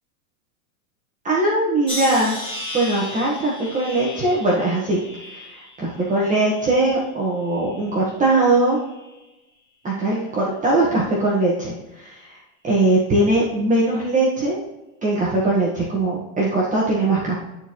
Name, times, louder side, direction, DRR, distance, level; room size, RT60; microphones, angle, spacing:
voice 1, 1.2-2.3 2.7-5.0 5.3-8.8 9.8-12.4 12.6-14.6 15.0-17.4, right 2 dB, 15° right, -5 dB, 1.6 m, -20 dB
sound 1, 1.9-7.0 7.5-8.2 8.9-9.2, left 1 dB, 10° left, 2.8 m, -35 dB
12.5 x 4.5 x 3.1 m, 0.97 s
supercardioid pair, 130°, 43 cm